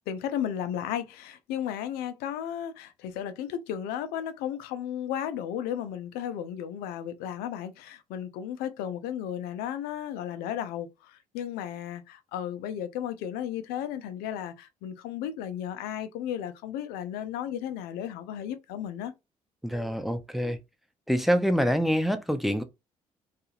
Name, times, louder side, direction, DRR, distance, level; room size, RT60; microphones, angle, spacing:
voice 1, 0.1-19.1, left 10 dB, 65° left, 0.5 m, -34 dB
voice 2, 19.6-20.6 21.1-22.6, equal, ahead, 0.5 m, -26 dB
2.7 x 2.4 x 2.8 m
figure-of-eight pair, 45°, 17 cm